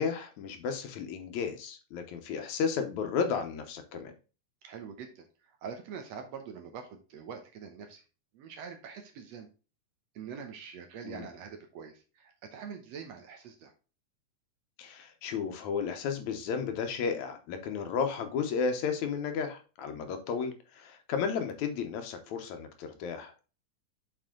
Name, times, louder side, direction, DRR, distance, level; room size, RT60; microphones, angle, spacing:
voice 1, 0.0-4.1 11.1-11.2 14.8-23.4, left 6 dB, 70° left, 6 dB, 2.2 m, -33 dB
voice 2, 4.6-8.0 8.3-9.5 10.2-13.7, right 6 dB, 70° right, 5 dB, 1.9 m, -44 dB
7.5 x 4.8 x 3.7 m, 0.33 s
omnidirectional pair, 3.5 m